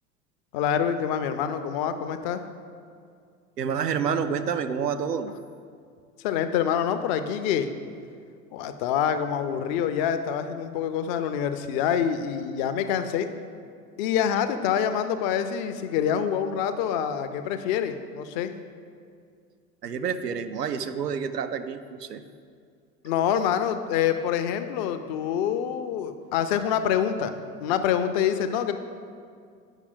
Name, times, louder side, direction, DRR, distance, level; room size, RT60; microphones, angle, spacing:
voice 1, 0.5-2.4 6.2-7.7 8.5-13.3 14.0-18.5 23.0-28.7, left 8 dB, 35° left, 9 dB, 0.4 m, -26 dB
voice 2, 3.6-5.3 19.8-22.2, right 7 dB, 85° right, 10 dB, 0.6 m, -28 dB
8.9 x 5.9 x 3.8 m, 2.2 s
figure-of-eight pair, 80°, 47 cm